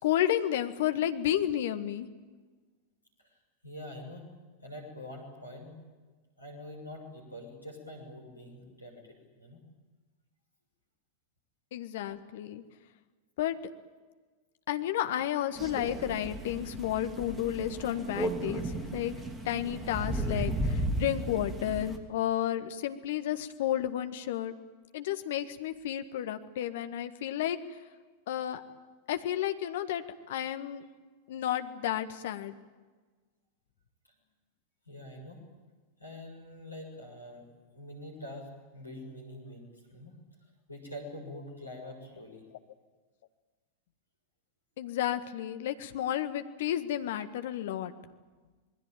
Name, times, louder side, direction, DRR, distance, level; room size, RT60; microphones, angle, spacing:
voice 1, 0.0-2.1 11.7-12.6 13.4-13.6 14.7-19.1 19.4-24.5 24.9-27.8 28.3-28.6 29.1-30.8 31.3-32.5 44.8-47.9, left 11 dB, 55° left, 9 dB, 1.6 m, -32 dB
voice 2, 3.2-4.4 4.6-5.8 6.4-9.6 34.8-35.5 36.0-37.5 37.7-40.2 40.7-42.4, left 1 dB, 85° left, 1 dB, 6.9 m, -45 dB
Crow, 15.6-22.0, right 1 dB, 15° right, 3.1 m, -34 dB
27.0 x 21.0 x 9.0 m, 1.4 s
figure-of-eight pair, 90°, 0 cm